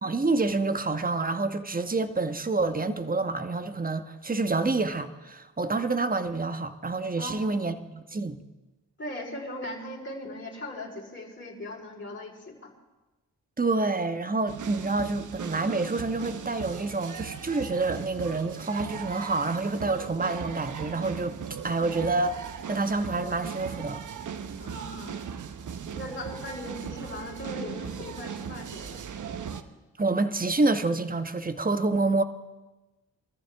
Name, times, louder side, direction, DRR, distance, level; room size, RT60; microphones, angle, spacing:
voice 1, 0.0-8.4 13.6-21.4 21.6-24.0 30.0-32.2, right 3 dB, 25° right, 1.2 m, -28 dB
voice 2, 7.2-7.7 9.0-12.7 24.6-25.2 25.9-29.0, left 1 dB, 30° left, 4.2 m, -39 dB
sound 1, 14.5-29.6, right 7 dB, 55° right, 1.1 m, -38 dB
23.0 x 13.5 x 3.6 m
supercardioid pair, 45°, 35 cm